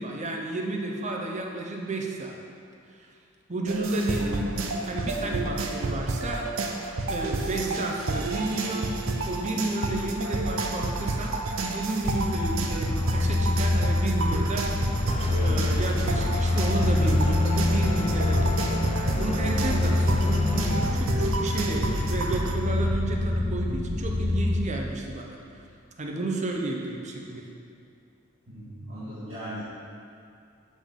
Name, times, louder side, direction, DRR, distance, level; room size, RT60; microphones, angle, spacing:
voice 1, 0.0-2.4 3.0-3.1 3.5-4.4 4.9-6.5 7.1-8.9 9.3-14.9 15.4-18.7 19.2-25.4 26.0-27.4, right 2 dB, 35° right, 1 dB, 0.7 m, -32 dB
sound 1, 3.7-22.6, right 2 dB, 90° right, 0.6 m, -30 dB
sound 2, 12.0-24.5, left 2 dB, 15° right, 1.6 m, -26 dB
sound 3, 15.0-23.2, left 2 dB, 30° left, 0.4 m, -33 dB
voice 2, 28.5-29.6, right 1 dB, 75° right, -12 dB, 1.6 m, -39 dB
7.3 x 5.3 x 3.7 m, 2.4 s
head